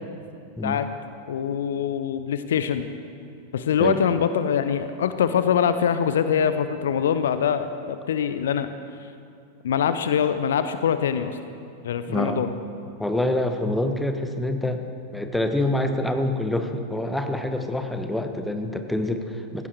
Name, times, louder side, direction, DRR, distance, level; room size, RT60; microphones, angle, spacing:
voice 1, 1.3-2.9 3.5-8.7 9.6-11.4 11.8-12.5, left 8 dB, 60° left, 11 dB, 0.7 m, -23 dB
voice 2, 12.1-12.4 13.0-14.8 15.1-19.7, left 1 dB, 5° left, 6 dB, 1.2 m, -26 dB
18.0 x 15.5 x 4.6 m, 2.5 s
figure-of-eight pair, 90°, 0 cm